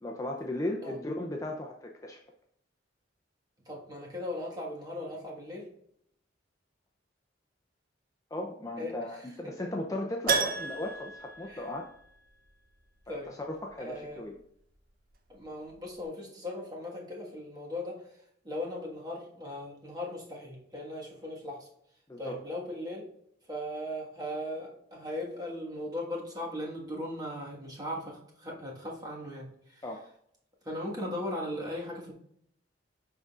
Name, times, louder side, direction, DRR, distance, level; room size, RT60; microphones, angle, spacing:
voice 1, 0.0-2.2 8.3-11.9 13.1-14.3 22.1-22.4 29.8-30.0, left 1 dB, 20° left, 1 dB, 0.5 m, -36 dB
voice 2, 3.6-5.7 8.8-9.7 11.5-11.7 13.1-13.4 13.8-14.2 15.3-18.1 18.4-21.7 22.2-23.1 23.5-29.8 30.6-32.1, left 1 dB, 20° right, -2 dB, 1.5 m, -38 dB
Keyboard (musical), 10.3-12.3 12.6-12.7 15.4-15.5 15.7-15.8, right 5 dB, 50° right, 0.7 m, -32 dB
10.5 x 3.8 x 2.4 m, 0.71 s
head